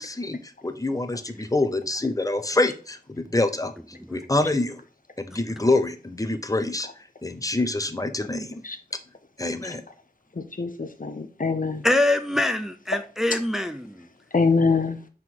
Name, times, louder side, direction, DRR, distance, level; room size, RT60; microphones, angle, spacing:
voice 1, 0.0-3.7 4.1-4.8 5.2-6.9 7.2-8.6 9.4-9.8, left 2 dB, 20° left, 0.8 m, -26 dB
voice 2, 10.4-11.8 14.3-15.0, left 4 dB, 60° left, 0.8 m, -24 dB
voice 3, 11.8-14.1, left 1 dB, 5° right, 0.5 m, -24 dB
5.8 x 3.8 x 4.6 m
wide cardioid pair, 45°, 16 cm